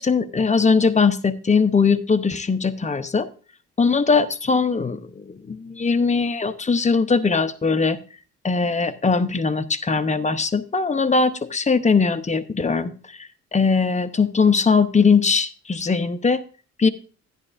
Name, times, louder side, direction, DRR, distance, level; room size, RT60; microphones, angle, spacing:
voice 1, 0.0-3.3 3.8-8.0 8.4-16.4 16.8-16.9, left 4 dB, 25° left, 10 dB, 0.8 m, -20 dB
11.0 x 11.0 x 2.5 m, 0.37 s
cardioid pair, 90°, 30 cm